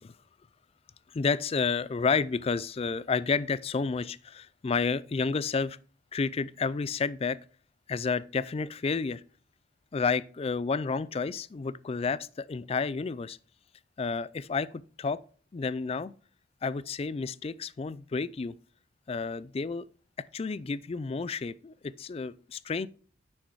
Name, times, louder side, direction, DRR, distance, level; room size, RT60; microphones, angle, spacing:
voice 1, 1.1-5.8 6.1-7.4 7.9-9.2 9.9-13.4 14.0-14.7 15.0-15.2 15.5-16.1 16.6-18.5 19.1-19.8 20.3-22.9, left 4 dB, 30° left, 0.3 m, -30 dB
9.5 x 6.4 x 4.6 m
head